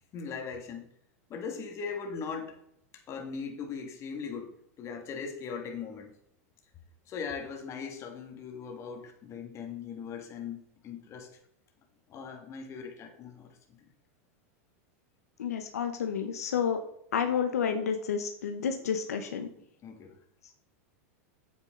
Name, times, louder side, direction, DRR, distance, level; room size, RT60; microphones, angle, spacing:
voice 1, 0.1-0.9 1.3-2.6 2.9-6.1 7.1-11.3 12.1-13.9 19.8-20.2, left 6 dB, 35° left, 4 dB, 2.1 m, -39 dB
voice 2, 15.4-16.8 17.1-19.5, left 7 dB, 90° left, 6 dB, 1.0 m, -30 dB
8.3 x 8.1 x 3.8 m, 0.72 s
hypercardioid pair, 110°, 8 cm